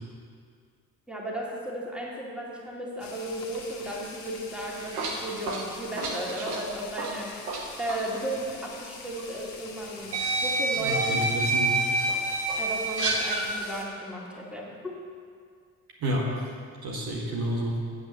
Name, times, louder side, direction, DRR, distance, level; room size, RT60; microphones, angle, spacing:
voice 1, 1.1-7.4 7.8-11.1 12.6-14.8, right 1 dB, ahead, -3 dB, 2.5 m, -35 dB
sound 1, 3.0-13.8, left 4 dB, 75° left, 1.3 m, -45 dB
sound 2, 4.6-7.6 7.9-8.1 9.2-9.3 10.1-13.5, right 2 dB, 80° right, 1.1 m, -28 dB
voice 2, 10.8-11.8 16.0-16.5 16.8-17.8, equal, 55° right, -2 dB, 1.9 m, -30 dB
8.7 x 8.1 x 6.8 m, 2.1 s
figure-of-eight pair, 45°, 46 cm